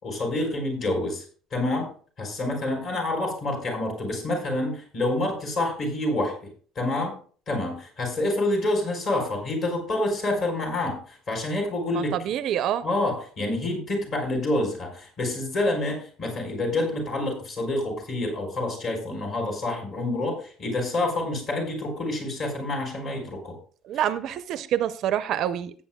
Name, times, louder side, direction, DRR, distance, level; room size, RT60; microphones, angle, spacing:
voice 1, 0.0-1.2 1.5-1.9 2.2-6.4 6.7-7.1 7.5-12.2 12.8-23.5, left 2 dB, 40° left, 4.2 m, -27 dB
voice 2, 11.9-12.8 23.9-25.7, right 10 dB, 50° right, 0.5 m, -26 dB
16.5 x 8.6 x 2.2 m
cardioid pair, 160°, 0 cm